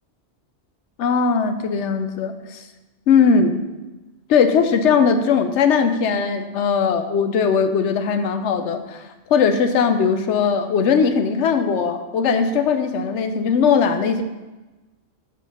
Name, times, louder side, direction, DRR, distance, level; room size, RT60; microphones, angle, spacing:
voice 1, 1.0-2.6 3.1-3.5 4.3-9.0 9.3-14.2, left 6 dB, 90° left, 8 dB, 1.0 m, -19 dB
7.4 x 3.8 x 5.5 m, 1.1 s
omnidirectional pair, 1.2 m